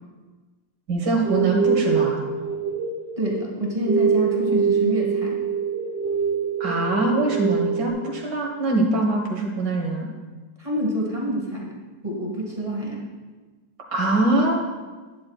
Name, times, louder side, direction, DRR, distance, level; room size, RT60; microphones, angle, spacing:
voice 1, 0.9-2.2 6.6-10.1 13.9-14.6, right 2 dB, 75° right, 0 dB, 2.1 m, -23 dB
sound 1, 1.2-7.9, right 6 dB, 30° left, 1.9 m, -24 dB
voice 2, 3.2-5.4 10.6-11.8 12.0-13.0, equal, 20° right, -3 dB, 1.5 m, -26 dB
11.5 x 9.5 x 2.4 m, 1.3 s
omnidirectional pair, 1.9 m